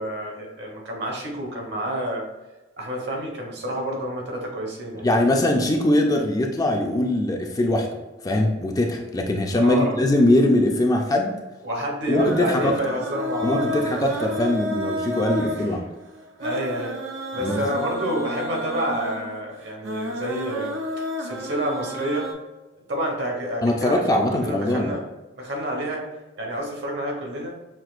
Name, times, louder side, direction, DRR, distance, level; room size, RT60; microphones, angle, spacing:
voice 1, 0.0-2.3 2.8-5.1 9.5-10.0 11.6-14.1 15.4-15.6 16.4-17.0 17.3-22.3 22.9-25.0 25.4-26.0 26.4-27.6, right 1 dB, 60° right, -1 dB, 1.1 m, -28 dB
voice 2, 5.0-7.9 8.2-11.3 12.1-12.7 13.4-15.8 17.4-17.6 23.6-24.9, left 1 dB, 20° left, 2 dB, 0.4 m, -21 dB
sound 1, 12.2-22.3, equal, 80° right, 0.7 m, -31 dB
5.9 x 2.6 x 2.4 m, 1.1 s
head